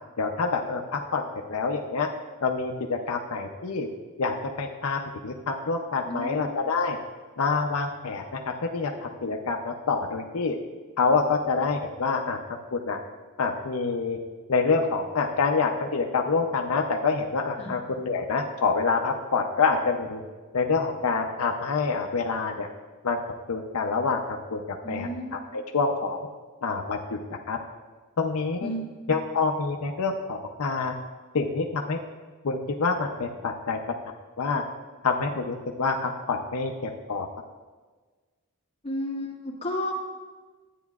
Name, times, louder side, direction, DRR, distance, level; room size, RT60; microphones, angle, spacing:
voice 1, 0.2-1.2 1.5-2.1 2.4-3.9 4.2-7.0 7.4-8.4 8.7-10.6 11.0-12.4 12.7-13.0 13.4-14.2 14.5-20.2 20.5-22.7 23.0-23.2 23.5-24.2 24.5-24.6 24.9-26.2 26.6-27.0 27.5-27.6 28.2-28.7 29.1-30.9 31.3-32.0 32.4-33.8 34.4-34.6 35.0-37.3, left 4 dB, 80° left, 2 dB, 0.6 m, -26 dB
voice 2, 6.1-6.5 17.6-17.7 24.8-25.4 28.6-28.9 38.8-39.9, equal, 25° left, -3 dB, 1.6 m, -32 dB
13.0 x 9.1 x 2.4 m, 1.4 s
head